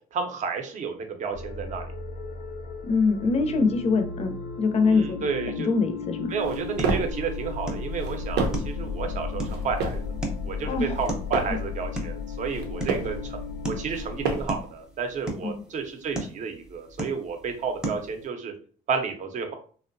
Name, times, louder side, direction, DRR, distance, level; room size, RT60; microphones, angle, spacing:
voice 1, 0.1-1.9 4.8-5.7 6.3-10.0 10.4-13.4 13.7-18.5 18.9-19.5, right 5 dB, 45° right, 5 dB, 0.6 m, -31 dB
sound 1, 1.3-14.3, left 5 dB, 90° left, 0.6 m, -35 dB
voice 2, 2.8-5.3 5.6-6.3 10.7-10.9 15.4-15.6, left 4 dB, 40° left, 7 dB, 0.5 m, -24 dB
sound 2, 6.3-18.3, right 1 dB, 5° right, 0.6 m, -38 dB
sound 3, 6.4-7.2 7.9-8.8 9.4-10.1 10.8-11.7 12.4-13.2 13.9-14.7, right 4 dB, 90° right, 0.6 m, -30 dB
2.7 x 2.1 x 2.5 m, 0.43 s
cardioid pair, 110°, 17 cm